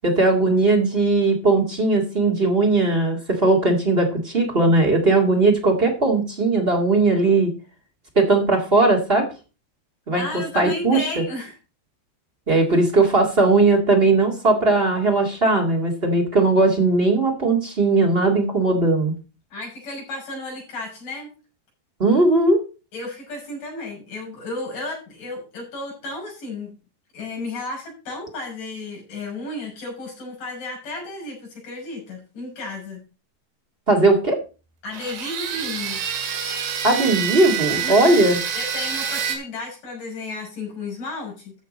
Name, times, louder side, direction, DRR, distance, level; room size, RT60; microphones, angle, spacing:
voice 1, 0.0-7.5 8.1-9.3 10.1-10.2 10.5-11.0 12.5-19.1 22.0-22.6 33.9-34.4 36.8-38.4, right 2 dB, 45° right, 0 dB, 0.7 m, -18 dB
voice 2, 10.1-11.6 19.5-21.3 22.9-26.7 27.1-33.0 34.8-36.0 37.8-41.5, left 2 dB, 50° left, -2 dB, 7.8 m, -33 dB
sound 1, 34.9-39.4, right 7 dB, 80° right, 4.1 m, -27 dB
14.5 x 6.8 x 4.1 m, 0.32 s
omnidirectional pair, 4.8 m